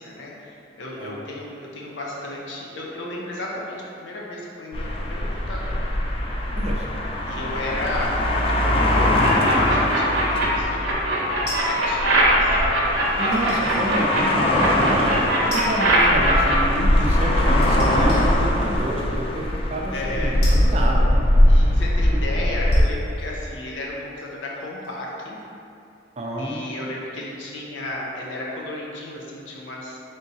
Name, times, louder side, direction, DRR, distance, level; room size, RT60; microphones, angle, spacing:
voice 1, 0.0-5.8 7.3-8.2 9.2-10.9 11.6-12.7 15.0-15.2 17.0-17.6 19.9-20.4 21.5-25.4 26.4-30.0, left 2 dB, 80° left, -3 dB, 0.7 m, -34 dB
sound 1, 4.7-22.8, left 1 dB, 30° left, 0.3 m, -21 dB
voice 2, 6.6-6.9 13.2-19.4 19.7-21.2 26.2-26.7, right 1 dB, 35° right, -2 dB, 0.4 m, -28 dB
sound 2, 9.2-10.5 10.8-14.2 14.6-16.6, right 1 dB, 60° right, 0.8 m, -21 dB
sound 3, 11.5-12.0 13.3-13.8 14.4-14.5 15.5-16.0 16.2-16.3 17.6-18.3 19.1-19.2 20.4-21.5 22.2-22.3 22.6-25.1 25.4-25.5, left 2 dB, 60° left, 1.0 m, -38 dB
3.9 x 3.6 x 2.7 m, 2.6 s
head